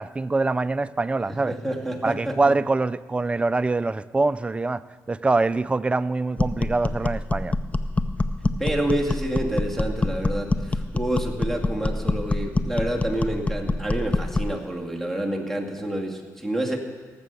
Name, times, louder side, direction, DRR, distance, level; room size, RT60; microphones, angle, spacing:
voice 1, 0.0-1.5 2.0-4.8 5.1-7.5, right 3 dB, 20° right, 15 dB, 0.4 m, -24 dB
voice 2, 1.3-2.4 8.6-16.8, right 1 dB, 5° left, 2 dB, 2.2 m, -28 dB
sound 1, 6.4-14.6, left 2 dB, 20° left, 0.7 m, -26 dB
17.5 x 7.5 x 7.0 m, 1.5 s
cardioid pair, 80°, 6 cm